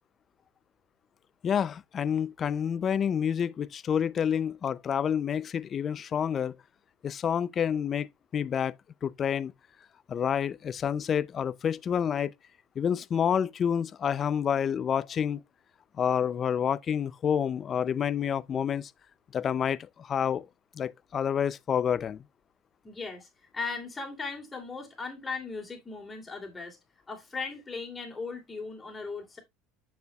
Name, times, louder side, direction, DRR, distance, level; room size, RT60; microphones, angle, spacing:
voice 1, 1.4-6.6 7.0-8.7 9.0-9.5 10.1-12.3 12.8-15.4 16.0-18.9 19.3-20.5 20.8-22.2, left 8 dB, 35° left, 0.5 m, -28 dB
voice 2, 22.8-23.3 23.5-26.8 27.1-29.4, left 4 dB, 20° left, 2.8 m, -37 dB
9.4 x 6.8 x 2.3 m
supercardioid pair, 115°, 0 cm